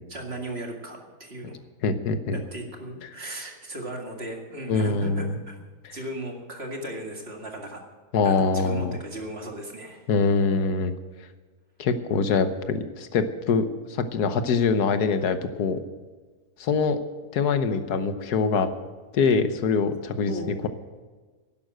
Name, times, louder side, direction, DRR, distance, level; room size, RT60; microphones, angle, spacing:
voice 1, 0.1-1.6 2.3-5.6 5.9-7.8 8.2-10.1 20.3-20.6, right 1 dB, 40° right, 1 dB, 2.3 m, -36 dB
voice 2, 1.8-2.4 4.7-5.4 5.8-5.9 8.1-9.0 10.1-10.9 11.8-15.8 16.6-17.0 17.3-18.7 19.1-20.3, left 5 dB, 90° left, 10 dB, 1.6 m, -24 dB
11.5 x 11.5 x 7.8 m, 1.4 s
omnidirectional pair, 1.7 m